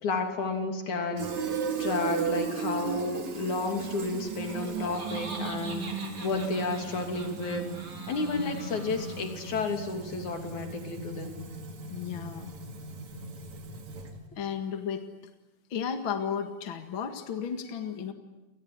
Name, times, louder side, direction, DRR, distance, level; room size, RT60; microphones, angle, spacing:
voice 1, 0.0-5.9 6.2-7.7 8.1-11.4, left 3 dB, 70° left, 4 dB, 4.5 m, -32 dB
Fill (with liquid), 1.2-14.3, right 5 dB, 65° right, 3.7 m, -36 dB
Laughter, 4.3-9.5, right 3 dB, 45° right, 4.2 m, -44 dB
voice 2, 11.9-12.5 14.3-15.0 15.7-18.1, left 7 dB, 45° left, 6 dB, 2.4 m, -33 dB
29.5 x 19.5 x 9.7 m, 1.1 s
omnidirectional pair, 3.5 m